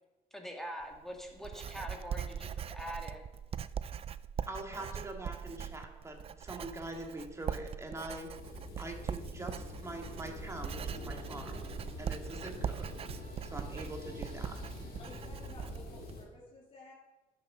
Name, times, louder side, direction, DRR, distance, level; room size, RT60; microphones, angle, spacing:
voice 1, 0.3-3.2, equal, ahead, 1 dB, 2.0 m, -43 dB
Writing, 0.8-16.2, right 8 dB, 35° right, 0.4 m, -41 dB
voice 2, 4.5-8.3 8.8-11.6 12.0-12.9 13.2-14.6, right 2 dB, 15° right, 2 dB, 1.9 m, -44 dB
sound 1, 8.3-16.2, left 3 dB, 65° left, 2.6 m, -46 dB
sound 2, 9.6-15.5, right 3 dB, 55° right, 1.9 m, -57 dB
voice 3, 15.0-16.9, left 2 dB, 40° left, -6 dB, 2.7 m, -53 dB
11.5 x 6.9 x 6.0 m, 1.1 s
cardioid pair, 110°, 17 cm